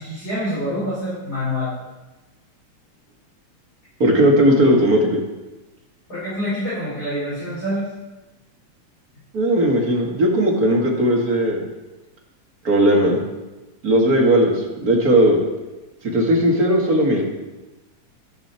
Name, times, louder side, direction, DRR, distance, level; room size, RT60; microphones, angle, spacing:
voice 1, 0.0-1.7 6.1-7.9, left 1 dB, 30° left, -10 dB, 5.8 m, -26 dB
voice 2, 4.0-5.2 9.3-11.6 12.6-13.2 13.8-15.4 16.0-17.2, right 1 dB, 35° right, -1 dB, 2.1 m, -17 dB
13.0 x 13.0 x 4.5 m, 1.1 s
omnidirectional pair, 3.3 m